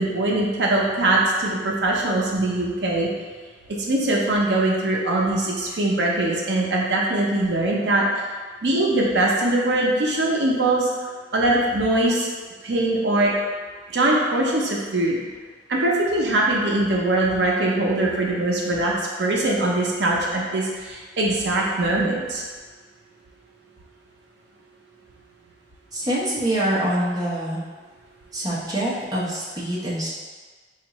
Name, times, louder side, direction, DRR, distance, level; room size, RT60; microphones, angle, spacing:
voice 1, 0.0-3.1 3.9-8.0 8.6-10.9 11.3-12.3 12.6-13.3 13.9-15.2 15.7-22.4, right 2 dB, 70° right, -2 dB, 0.6 m, -22 dB
voice 2, 25.9-27.6 28.3-30.1, right 1 dB, 20° right, -8 dB, 0.8 m, -25 dB
4.4 x 2.4 x 2.9 m, 1.5 s
head